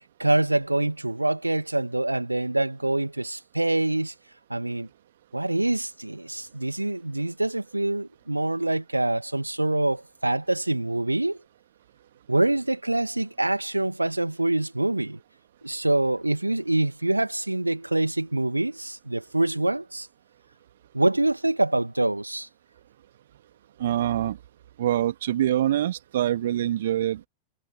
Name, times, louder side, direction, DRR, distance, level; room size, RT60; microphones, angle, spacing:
voice 1, 0.2-4.1 4.5-4.9 5.3-11.4 12.3-15.2 15.6-20.1 20.9-22.5, right 2 dB, 85° right, 2.3 m, -25 dB
voice 2, 23.8-24.4 24.8-27.3, right 12 dB, 60° right, 2.2 m, -25 dB
figure-of-eight pair, 90°, 0 cm